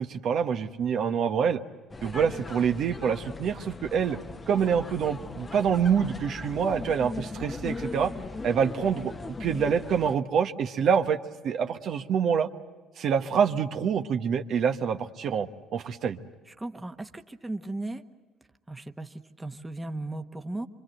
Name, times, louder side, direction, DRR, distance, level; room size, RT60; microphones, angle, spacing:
voice 1, 0.0-1.6 2.0-4.2 4.5-8.1 8.4-11.2 11.4-12.5 13.0-16.2, right 7 dB, 60° right, 6 dB, 1.3 m, -26 dB
sound 1, 1.9-10.2, left 3 dB, 25° left, 1.1 m, -39 dB
voice 2, 16.6-18.0 18.7-20.7, right 2 dB, 15° right, 6 dB, 1.3 m, -36 dB
26.0 x 24.5 x 7.9 m, 1.3 s
supercardioid pair, 85°, 0 cm